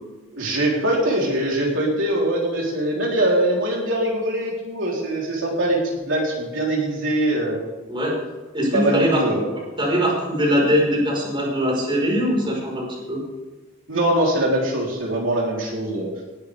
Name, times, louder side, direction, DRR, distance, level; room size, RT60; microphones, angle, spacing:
voice 1, 0.3-7.6 8.7-9.4 13.9-16.1, right 1 dB, 70° right, -3 dB, 3.8 m, -22 dB
voice 2, 7.9-8.2 8.5-9.2 9.8-13.2, equal, 25° right, -2 dB, 4.9 m, -21 dB
19.5 x 11.5 x 3.6 m, 1.2 s
head